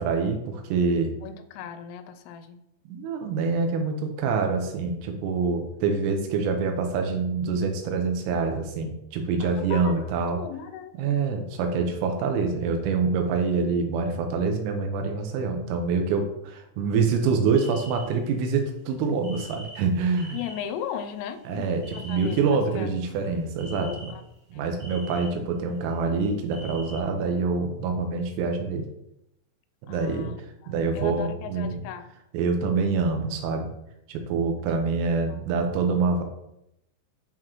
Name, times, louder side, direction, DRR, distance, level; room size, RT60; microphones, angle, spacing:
voice 1, 0.0-1.1 2.9-10.4 11.0-20.4 21.5-24.1 24.5-28.9 29.9-30.3 30.7-31.7 32.3-33.7 34.1-36.2, right 4 dB, 85° right, 4 dB, 3.6 m, -26 dB
voice 2, 1.2-2.6 9.4-10.0 10.3-11.2 20.3-22.9 23.8-24.2 24.5-24.9 29.9-32.1 35.3-35.4, left 9 dB, 85° left, 9 dB, 3.3 m, -37 dB
sound 1, 17.5-18.3 19.2-20.6 21.0-22.4 23.0-23.2 23.6-24.3 24.8-25.3 26.0-27.0, left 1 dB, 65° right, 2.3 m, -44 dB
11.0 x 3.7 x 3.0 m, 0.81 s
omnidirectional pair, 6.0 m